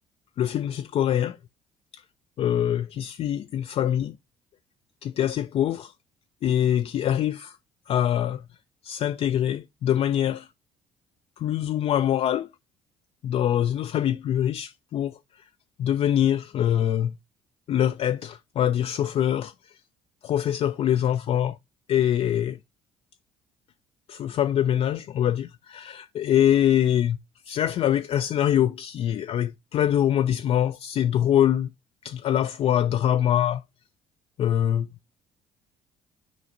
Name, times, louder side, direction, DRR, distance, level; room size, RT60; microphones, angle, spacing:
voice 1, 0.4-1.4 1.9-2.0 2.4-4.2 5.0-5.9 6.4-7.6 7.9-8.4 8.8-10.5 11.4-12.5 13.2-15.4 15.8-17.2 17.7-19.8 20.2-21.6 21.9-22.6 24.1-27.2 27.5-31.7 32.0-33.6 34.4-34.9, left 10 dB, 40° left, 0.4 m, -24 dB
12.5 x 4.9 x 2.7 m
figure-of-eight pair, 50°, 15 cm